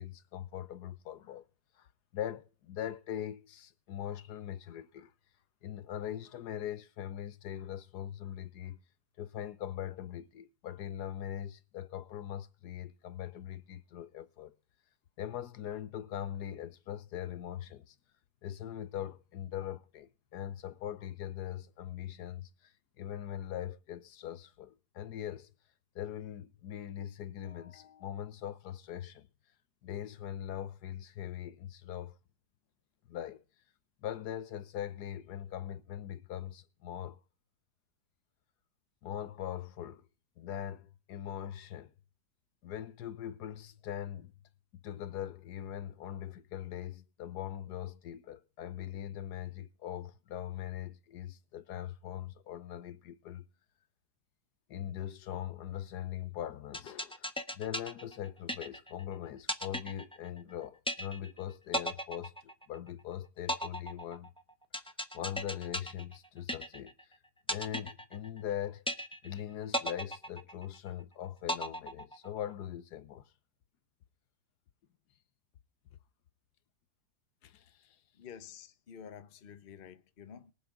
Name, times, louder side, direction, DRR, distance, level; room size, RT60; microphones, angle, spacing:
voice 1, 0.0-1.4 1.8-1.9 2.1-5.1 5.6-8.8 9.2-14.6 15.2-18.0 18.4-25.5 25.9-29.3 29.8-32.2 33.1-33.4 34.0-37.2 39.0-40.1 40.4-41.9 42.6-44.3 44.7-53.5 54.7-64.3 65.1-66.9 67.5-68.8 69.2-73.3 77.4-78.0, left 11 dB, 80° left, 1.3 m, -41 dB
sound 1, 56.7-59.0 59.5-60.5 60.9-61.4 61.7-63.0 63.5-67.0 67.5-68.5 68.9-69.4 69.7-71.0 71.5-72.5, equal, 5° left, 0.6 m, -36 dB
voice 2, 78.2-80.5, left 8 dB, 40° left, 0.9 m, -50 dB
22.5 x 7.8 x 3.8 m
omnidirectional pair, 1.8 m